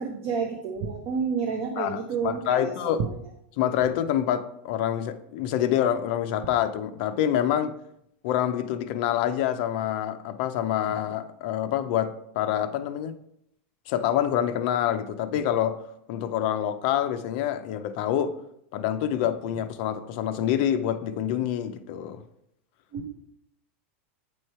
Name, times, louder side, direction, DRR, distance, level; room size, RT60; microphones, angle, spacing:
voice 1, 0.0-3.0 22.9-23.1, right 5 dB, 35° right, 4 dB, 0.6 m, -30 dB
voice 2, 1.8-3.0 3.6-7.7 8.2-13.1 13.9-15.8 16.1-18.3 18.7-22.2, left 10 dB, 45° left, 9 dB, 0.5 m, -26 dB
8.7 x 3.1 x 4.3 m, 0.76 s
supercardioid pair, 165°, 7 cm